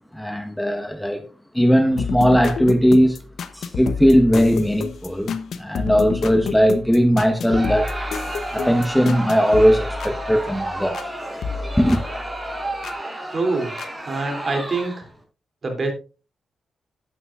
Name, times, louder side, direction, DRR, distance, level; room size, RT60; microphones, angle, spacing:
voice 1, 0.1-1.2 1.5-3.2 3.5-7.9 8.5-11.1 11.8-12.0, equal, 5° left, 1.3 m, -18 dB
sound 1, 2.0-11.1 11.4-13.0 13.8-13.9, left 5 dB, 70° left, 0.8 m, -30 dB
Crowd, 7.4-15.2, right 1 dB, 15° right, 4.8 m, -31 dB
voice 2, 13.3-13.7 14.1-15.0 15.6-15.9, right 3 dB, 50° right, 3.0 m, -24 dB
11.5 x 9.4 x 2.5 m
supercardioid pair, 50°, 0 cm